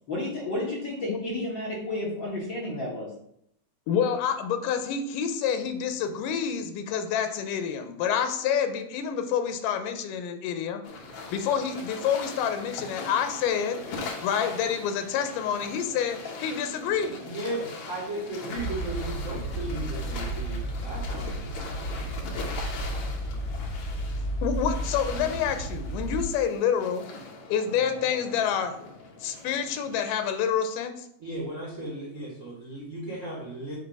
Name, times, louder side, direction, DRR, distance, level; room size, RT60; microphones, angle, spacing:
voice 1, 0.1-3.1, left 1 dB, 50° left, -5 dB, 1.4 m, -31 dB
voice 2, 3.9-10.8 11.3-13.8 14.2-17.2 24.4-27.1 27.5-28.9 29.2-31.1, left 8 dB, 85° left, 8 dB, 2.3 m, -28 dB
sound 1, 10.8-30.0, left 3 dB, 70° left, 1.3 m, -41 dB
voice 3, 17.2-21.9 31.2-33.8, right 1 dB, 65° right, -4 dB, 0.7 m, -36 dB
sound 2, 18.6-26.2, right 1 dB, 85° right, 2.2 m, -33 dB
8.0 x 2.7 x 5.2 m, 0.73 s
omnidirectional pair, 3.7 m